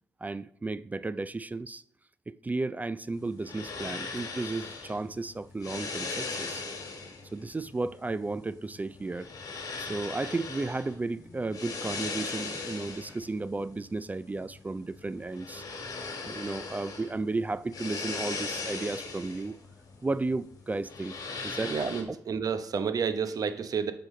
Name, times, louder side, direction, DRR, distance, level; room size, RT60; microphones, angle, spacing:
voice 1, 0.2-1.8 2.3-6.6 7.3-9.3 9.8-15.6 16.2-19.6 20.0-21.8 22.1-22.2, right 3 dB, 20° right, 0.4 m, -34 dB
sound 1, 3.1-22.0, left 4 dB, 55° left, 2.1 m, -39 dB
voice 2, 21.6-23.9, right 6 dB, 55° right, 0.9 m, -30 dB
8.1 x 5.9 x 3.8 m
supercardioid pair, 60°, 7 cm